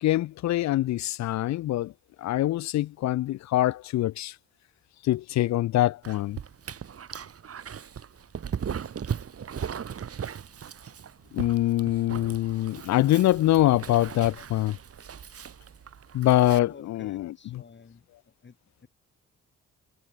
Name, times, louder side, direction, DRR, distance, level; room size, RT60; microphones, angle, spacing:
voice 1, 0.0-1.9 2.2-4.3 5.0-6.4 11.3-14.8 16.1-17.3, left 15 dB, 65° left, 0.6 m, -24 dB
Dog, 6.0-16.6, right 7 dB, 50° right, 4.6 m, -38 dB
voice 2, 16.6-18.9, left 5 dB, 35° left, 7.6 m, -52 dB
cardioid pair, 90°, 30 cm